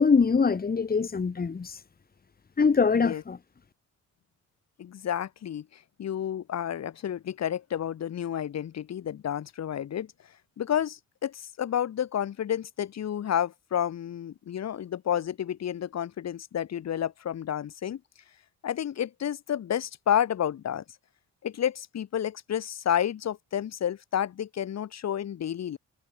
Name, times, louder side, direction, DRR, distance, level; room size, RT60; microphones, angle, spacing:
voice 1, 0.0-1.8 2.6-3.4, left 5 dB, 30° left, 2.1 m, -23 dB
voice 2, 2.9-3.2 4.8-5.6 6.0-10.1 10.6-18.0 18.6-20.8 21.4-25.8, left 9 dB, 60° left, 2.8 m, -30 dB
cardioid pair, 90°, 30 cm